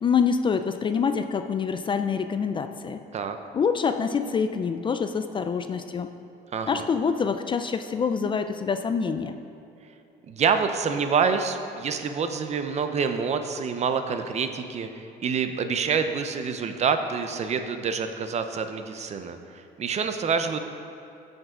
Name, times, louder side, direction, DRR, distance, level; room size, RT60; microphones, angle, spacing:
voice 1, 0.0-3.0 3.5-6.1 6.7-9.4, left 6 dB, 30° left, 9 dB, 0.3 m, -26 dB
voice 2, 6.5-6.8 10.3-20.6, right 6 dB, 40° right, 8 dB, 0.6 m, -27 dB
13.5 x 5.4 x 3.7 m, 2.9 s
cardioid pair, 110°, 17 cm